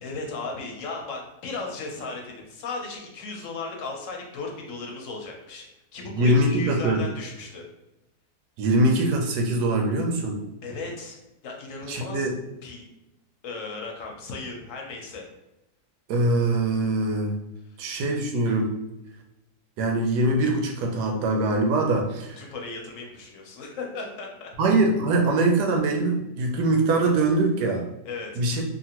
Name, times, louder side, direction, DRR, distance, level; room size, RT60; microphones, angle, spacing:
voice 1, 0.0-5.7 5.9-7.6 10.6-11.2 11.4-12.3 12.6-12.9 13.4-15.3 22.4-24.5 28.1-28.3, left 3 dB, 60° left, 1 dB, 0.9 m, -36 dB
voice 2, 6.2-7.0 8.6-10.4 11.9-12.3 16.1-17.3 17.8-18.7 19.8-22.4 24.6-27.9 28.4-28.6, right 2 dB, 90° right, 3 dB, 1.2 m, -23 dB
2.8 x 2.5 x 2.8 m, 0.96 s
omnidirectional pair, 1.7 m